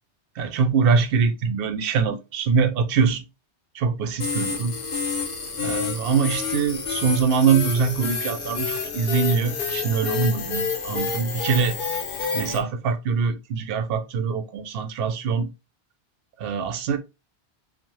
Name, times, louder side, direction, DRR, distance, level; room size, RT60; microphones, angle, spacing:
voice 1, 0.4-3.2 3.7-4.7 5.6-11.8 12.3-15.5 16.4-17.0, right 5 dB, 65° right, 0.7 m, -23 dB
sound 1, 4.2-12.6, left 5 dB, 55° left, 0.8 m, -29 dB
2.7 x 2.0 x 3.0 m
omnidirectional pair, 1.2 m